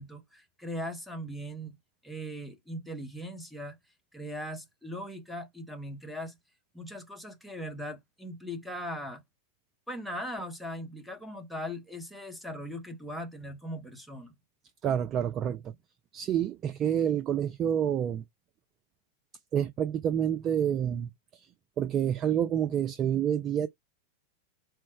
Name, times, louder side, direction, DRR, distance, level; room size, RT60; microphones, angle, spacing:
voice 1, 0.0-1.8 2.0-3.8 4.1-6.3 6.7-9.2 9.9-14.3, equal, ahead, 0.9 m, -39 dB
voice 2, 14.8-15.7 16.1-18.2 19.5-21.5 21.8-23.7, right 9 dB, 30° right, 0.3 m, -28 dB
4.4 x 2.0 x 4.5 m
figure-of-eight pair, 90°, 0 cm